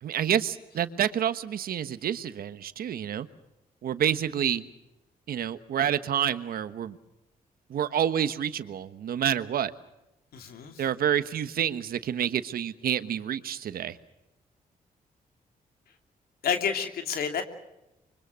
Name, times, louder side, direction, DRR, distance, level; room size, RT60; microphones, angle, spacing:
voice 1, 0.0-3.3 3.8-4.7 5.3-7.0 7.7-9.7 10.8-14.0, right 9 dB, 75° right, 12 dB, 1.3 m, -28 dB
voice 2, 10.3-10.8 16.4-17.4, left 7 dB, 85° left, 6 dB, 2.8 m, -29 dB
26.0 x 23.5 x 6.4 m, 0.96 s
cardioid pair, 70°, 15 cm